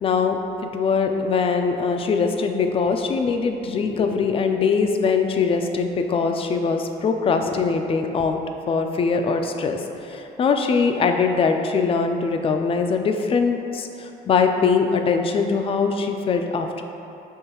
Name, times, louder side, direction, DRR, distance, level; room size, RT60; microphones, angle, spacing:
voice 1, 0.0-8.4 8.7-16.8, left 5 dB, 30° left, 5 dB, 0.3 m, -22 dB
5.5 x 3.1 x 2.9 m, 2.9 s
cardioid pair, 100°, 18 cm